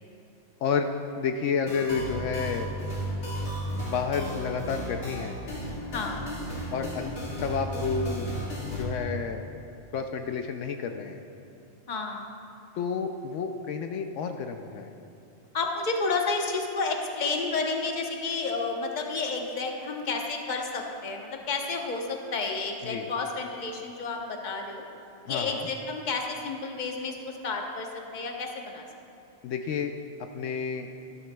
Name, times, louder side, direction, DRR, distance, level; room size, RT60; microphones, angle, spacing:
voice 1, 1.2-2.7 3.8-5.4 6.7-7.1 7.4-8.3 8.7-9.5 9.9-11.2 12.8-14.9 22.8-23.1 25.2-25.7 29.4-29.9 30.3-30.9, left 6 dB, 75° left, 5 dB, 0.9 m, -30 dB
sound 1, 1.7-8.8, equal, 60° left, 2.4 m, -34 dB
voice 2, 5.9-6.3 11.9-12.3 15.5-24.8 25.2-28.9, left 4 dB, 40° left, 2 dB, 1.0 m, -31 dB
13.5 x 13.0 x 2.3 m, 2.7 s
omnidirectional pair, 1.3 m